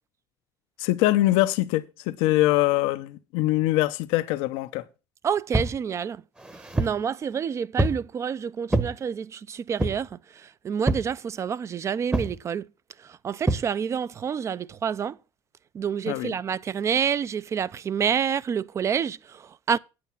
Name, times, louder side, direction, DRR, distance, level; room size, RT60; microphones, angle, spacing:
voice 1, 0.8-4.9 16.1-16.3, left 16 dB, 90° left, 0.7 m, -23 dB
voice 2, 5.2-6.2 6.8-12.7 13.0-15.2 15.7-19.8, right 7 dB, 30° right, 0.4 m, -28 dB
sound 1, 5.5-5.8 6.4-7.0 7.8-8.1 8.7-9.0 9.8-10.1 10.9-11.1 12.1-12.4 13.5-13.7, right 2 dB, 10° right, 0.9 m, -26 dB
9.2 x 7.8 x 5.7 m
cardioid pair, 130°, 10 cm